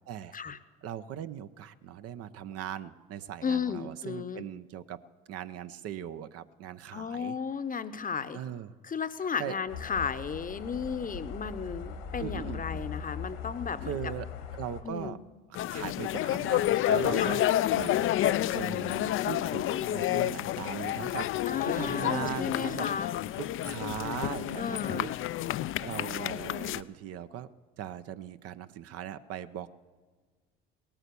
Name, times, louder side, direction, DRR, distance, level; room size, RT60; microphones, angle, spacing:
voice 1, 0.8-5.0 5.3-7.4 8.3-8.7 9.4-9.5 12.2-12.8 13.8-14.3 14.6-15.2 15.5-17.4 17.7-22.9 23.4-25.1 25.8-27.5 27.8-29.7, right 10 dB, 55° right, 12 dB, 0.7 m, -39 dB
voice 2, 3.4-4.4 6.9-8.4 8.8-14.0 14.8-15.2 17.1-17.4 21.5-23.1 24.5-25.2, left 6 dB, 30° left, 13 dB, 0.8 m, -34 dB
sound 1, 9.7-14.8, left 6 dB, 80° left, 1.7 m, -40 dB
sound 2, 15.6-26.8, left 13 dB, 45° left, 0.4 m, -29 dB
18.0 x 8.8 x 6.9 m, 1.5 s
hypercardioid pair, 60°, 29 cm